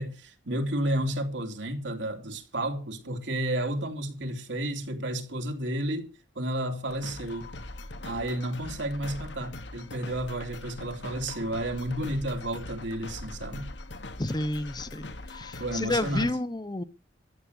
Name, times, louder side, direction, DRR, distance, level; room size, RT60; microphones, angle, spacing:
voice 1, 0.0-6.1 6.3-7.5 8.0-13.7 15.6-16.3, right 1 dB, 85° right, 3.1 m, -31 dB
sound 1, 6.9-16.3, left 2 dB, 75° left, 1.4 m, -42 dB
voice 2, 14.2-16.8, left 1 dB, 25° left, 0.8 m, -30 dB
14.0 x 8.2 x 8.2 m
head